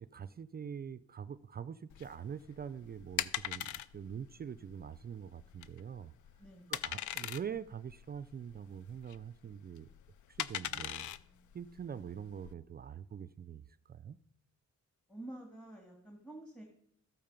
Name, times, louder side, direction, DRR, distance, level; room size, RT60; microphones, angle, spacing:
voice 1, 0.0-6.1 6.7-9.9 10.3-11.1 11.5-14.2, right 8 dB, 35° right, 14 dB, 0.4 m, -44 dB
sound 1, 1.9-12.5, left 12 dB, 90° left, 0.5 m, -41 dB
voice 2, 6.4-6.8 10.6-11.5 15.1-16.6, right 1 dB, 5° left, 2 dB, 1.8 m, -50 dB
13.5 x 8.8 x 5.2 m, 0.70 s
cardioid pair, 130°, 29 cm